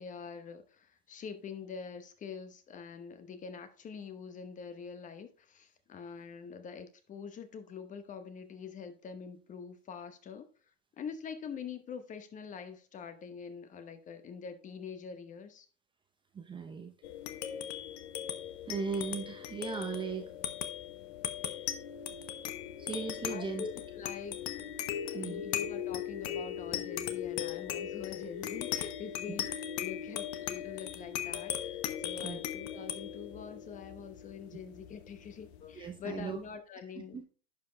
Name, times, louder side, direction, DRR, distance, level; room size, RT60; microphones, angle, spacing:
voice 1, 0.0-10.5 11.0-15.7 23.3-23.7 24.0-24.7 25.1-37.2, left 6 dB, 20° left, 0.9 m, -45 dB
voice 2, 16.3-16.9 18.6-20.3 22.8-23.7 25.1-25.4 29.3-29.5 32.2-32.4 35.7-36.4 37.0-37.2, right 5 dB, 15° right, 0.6 m, -38 dB
sound 1, 17.0-35.9, left 10 dB, 60° left, 1.1 m, -38 dB
10.5 x 5.2 x 3.3 m
hypercardioid pair, 115°, 38 cm